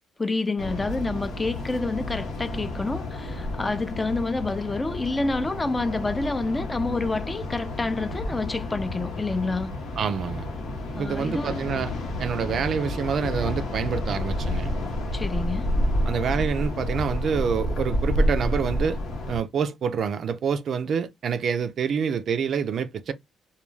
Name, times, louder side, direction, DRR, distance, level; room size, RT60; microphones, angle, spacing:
voice 1, 0.2-9.7 11.0-11.7 15.1-15.7, left 3 dB, 20° left, 0.4 m, -28 dB
sound 1, 0.6-19.4, left 1 dB, 80° left, 0.8 m, -30 dB
voice 2, 10.0-10.5 10.9-11.9 12.2-14.7 16.1-19.0 19.3-23.1, right 6 dB, 60° right, 0.3 m, -27 dB
2.3 x 2.2 x 3.1 m
cardioid pair, 90°, 0 cm